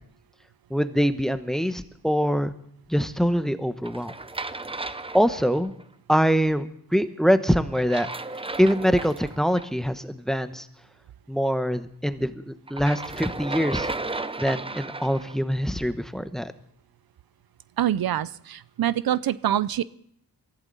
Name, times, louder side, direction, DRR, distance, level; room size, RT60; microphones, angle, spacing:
voice 1, 0.7-2.5 2.9-4.1 5.1-5.7 6.1-8.1 8.6-10.7 11.3-13.9 14.4-16.5, equal, ahead, 10 dB, 1.1 m, -24 dB
sound 1, 3.8-5.8 7.7-9.6 12.7-15.4, right 2 dB, 15° right, 0.7 m, -34 dB
voice 2, 17.8-19.8, right 11 dB, 70° right, 17 dB, 0.6 m, -25 dB
23.0 x 14.5 x 4.1 m, 0.66 s
cardioid pair, 85°, 37 cm